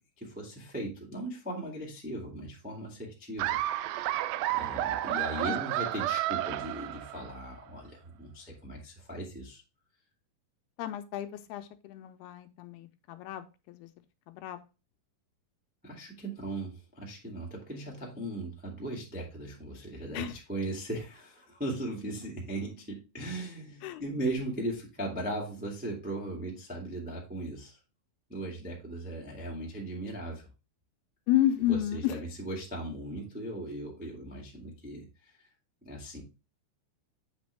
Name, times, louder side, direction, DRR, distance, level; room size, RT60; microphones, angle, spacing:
voice 1, 0.2-3.6 3.9-4.2 4.5-9.6 15.8-27.8 28.3-30.5 31.6-35.1 35.8-36.2, right 1 dB, 5° right, -2 dB, 0.6 m, -38 dB
Laughter, 3.4-7.4, right 14 dB, 85° right, 2.1 m, -31 dB
voice 2, 10.8-13.9 14.3-14.6 20.1-20.4 23.8-24.0 31.3-32.2, left 12 dB, 85° left, 9 dB, 2.6 m, -31 dB
8.1 x 5.1 x 3.3 m, 0.28 s
omnidirectional pair, 4.6 m